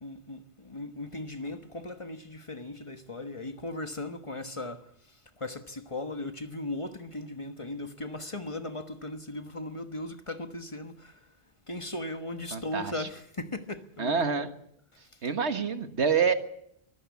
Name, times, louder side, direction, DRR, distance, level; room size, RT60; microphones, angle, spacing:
voice 1, 0.0-11.3 11.7-14.5 14.9-15.3, left 2 dB, 30° left, 1.3 m, -38 dB
voice 2, 12.5-13.1 14.0-14.5 15.2-16.3, right 6 dB, 90° right, 1.8 m, -27 dB
23.5 x 15.5 x 8.3 m
omnidirectional pair, 1.1 m